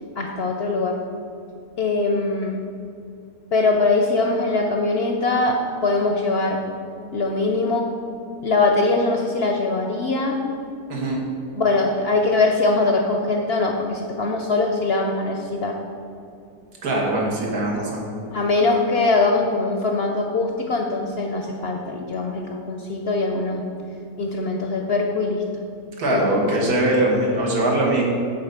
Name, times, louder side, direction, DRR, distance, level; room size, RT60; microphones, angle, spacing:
voice 1, 0.2-1.0 1.8-2.6 3.5-6.6 7.1-7.9 8.4-10.4 11.6-15.8 18.3-23.6 24.2-25.4 26.1-26.4, left 3 dB, 60° left, 2 dB, 0.6 m, -22 dB
voice 2, 10.9-11.2 16.8-18.0 26.0-28.0, right 1 dB, 80° right, -3 dB, 2.0 m, -21 dB
8.2 x 4.1 x 6.6 m, 2.5 s
omnidirectional pair, 1.6 m